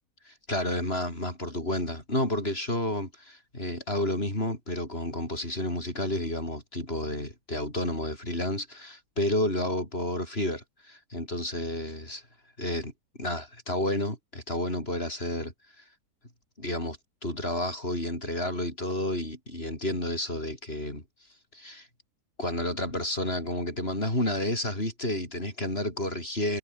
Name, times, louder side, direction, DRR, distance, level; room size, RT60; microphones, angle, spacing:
voice 1, 0.5-12.2 12.6-12.9 13.2-15.5 16.6-21.0 21.5-21.9 22.4-26.6, left 1 dB, 35° left, 8.0 m, -31 dB
omnidirectional pair, 1.8 m